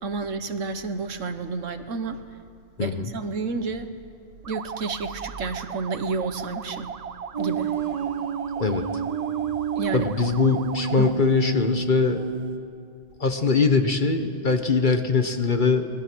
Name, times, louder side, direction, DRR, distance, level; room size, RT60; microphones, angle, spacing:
voice 1, 0.0-2.2 2.8-3.9 4.4-6.9 7.4-7.7 9.7-10.1 11.0-11.1, right 4 dB, 70° right, 10 dB, 1.4 m, -30 dB
voice 2, 2.8-3.1 8.6-8.8 9.9-12.2 13.2-15.9, left 4 dB, 40° left, 7 dB, 1.2 m, -22 dB
sound 1, 4.4-11.3, right 7 dB, 55° right, 0.4 m, -37 dB
sound 2, 7.3-12.6, right 7 dB, 30° right, 1.2 m, -30 dB
27.0 x 21.0 x 6.2 m, 2.4 s
omnidirectional pair, 1.4 m